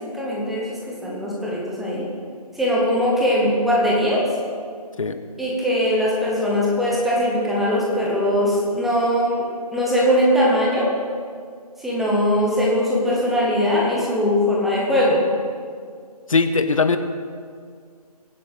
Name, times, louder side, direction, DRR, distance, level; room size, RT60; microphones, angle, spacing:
voice 1, 0.0-2.1 2.6-4.2 5.4-10.9 11.8-15.2, equal, ahead, -5 dB, 0.9 m, -21 dB
voice 2, 16.3-17.0, left 4 dB, 55° left, 9 dB, 1.1 m, -19 dB
22.0 x 7.7 x 4.9 m, 2.1 s
figure-of-eight pair, 165°, 20 cm